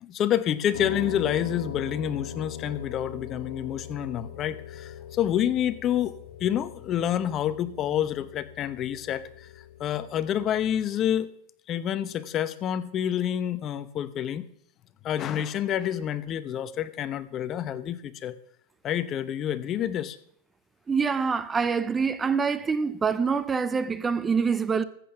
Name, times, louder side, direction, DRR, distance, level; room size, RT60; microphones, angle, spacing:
voice 1, 0.0-6.1 6.4-9.5 9.8-11.3 11.7-14.4 15.0-18.3 18.8-20.2, left 10 dB, 35° left, 0.8 m, -28 dB
Piano, 0.7-10.8, left 7 dB, 90° left, 1.9 m, -41 dB
voice 2, 20.9-24.8, right 5 dB, 15° right, 0.7 m, -25 dB
13.5 x 8.5 x 5.9 m
supercardioid pair, 125°, 0 cm